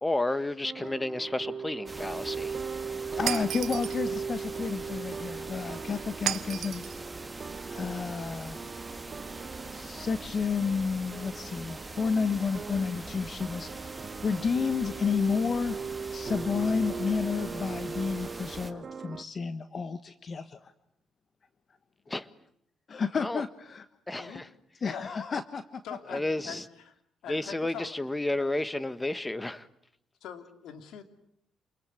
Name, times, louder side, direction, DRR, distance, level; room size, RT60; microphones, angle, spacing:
voice 1, 0.0-2.5 22.1-22.3 23.2-23.4 24.1-24.5 26.1-26.6 27.3-29.7, left 2 dB, 15° left, 1.6 m, -31 dB
sound 1, 0.6-19.2, right 5 dB, 45° right, 1.2 m, -39 dB
sound 2, 1.9-18.7, right 2 dB, 15° right, 2.2 m, -43 dB
voice 2, 3.1-6.8 7.7-8.6 9.7-13.7 14.2-15.8 16.1-20.7 22.1-22.2 22.9-23.8 24.8-25.8 26.1-26.2, left 5 dB, 45° left, 1.3 m, -31 dB
Shatter, 3.3-4.0 6.3-7.0, right 11 dB, 75° right, 1.2 m, -33 dB
voice 3, 25.8-26.9 27.2-28.0 30.2-31.0, left 8 dB, 80° left, 3.1 m, -43 dB
28.0 x 21.5 x 9.7 m
cardioid pair, 90°, 0 cm